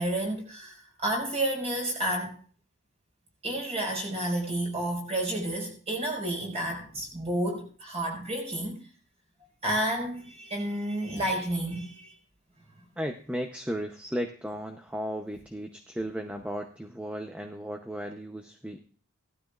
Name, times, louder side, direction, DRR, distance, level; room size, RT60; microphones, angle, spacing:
voice 1, 0.0-2.4 3.4-8.8 9.6-12.1, right 1 dB, 30° right, 1 dB, 4.8 m, -30 dB
voice 2, 13.0-18.8, equal, 5° right, 4 dB, 0.7 m, -35 dB
18.0 x 12.5 x 2.4 m, 0.40 s
head